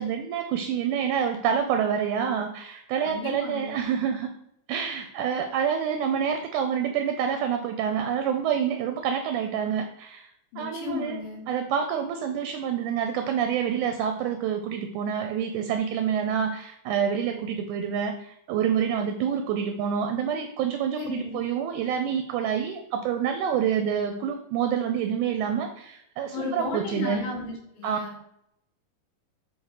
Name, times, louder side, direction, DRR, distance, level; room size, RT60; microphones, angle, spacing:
voice 1, 0.0-4.3 4.7-10.3 10.6-11.2 11.5-27.3 27.8-28.2, right 8 dB, 80° right, 6 dB, 1.8 m, -27 dB
voice 2, 3.0-3.8 10.5-11.5 21.0-21.5 26.3-28.2, left 3 dB, 75° left, -3 dB, 3.7 m, -34 dB
7.3 x 2.9 x 4.7 m, 0.76 s
omnidirectional pair, 3.8 m